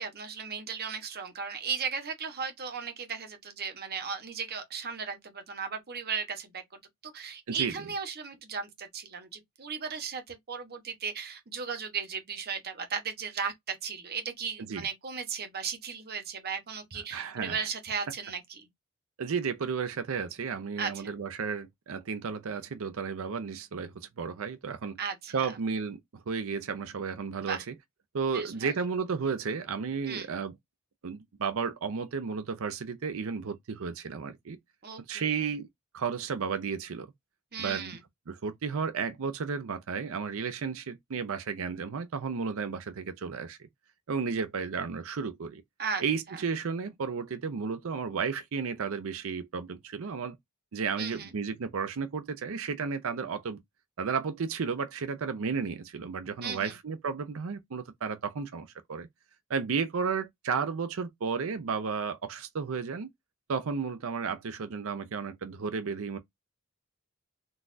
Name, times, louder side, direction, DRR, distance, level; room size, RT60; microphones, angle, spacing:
voice 1, 0.0-6.6 7.0-18.7 20.8-21.1 25.0-25.6 27.4-27.6 28.3-28.7 30.1-30.3 34.8-35.5 37.5-38.0 45.8-46.0 46.3-46.4 51.0-51.3 56.4-56.7, right 6 dB, 45° right, 0.9 m, -36 dB
voice 2, 17.1-17.7 19.2-25.0 25.3-27.7 28.1-30.5 31.0-34.6 35.1-35.7 35.9-37.1 37.6-38.0 38.3-43.7 44.1-45.6 46.0-50.4 50.7-53.6 54.0-59.1 59.5-63.1 63.5-66.2, right 5 dB, 65° right, 0.5 m, -33 dB
3.9 x 2.4 x 2.5 m
head